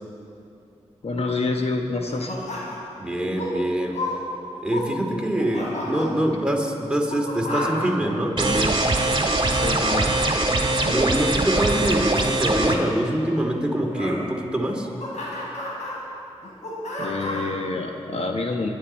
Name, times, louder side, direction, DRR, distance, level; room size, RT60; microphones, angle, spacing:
voice 1, 1.0-2.3 9.5-10.1 17.0-18.7, left 3 dB, 60° left, 3 dB, 1.2 m, -27 dB
sound 1, 2.1-2.9 3.2-3.5 3.9-4.2 4.5-4.9 5.2-6.1 6.9-7.9 9.0-10.0 10.8-11.0 11.5-11.7 12.5-12.8 13.9-14.2 14.7-15.9 16.4-17.5, left 1 dB, 85° left, 3.9 m, -32 dB
voice 2, 3.0-4.0 4.6-8.8 10.8-14.9, right 1 dB, 10° right, 0 dB, 2.5 m, -24 dB
sound 2, 8.4-12.8, right 2 dB, 40° right, 1.7 m, -22 dB
21.5 x 11.5 x 4.4 m, 2.7 s
cardioid pair, 55°, 12 cm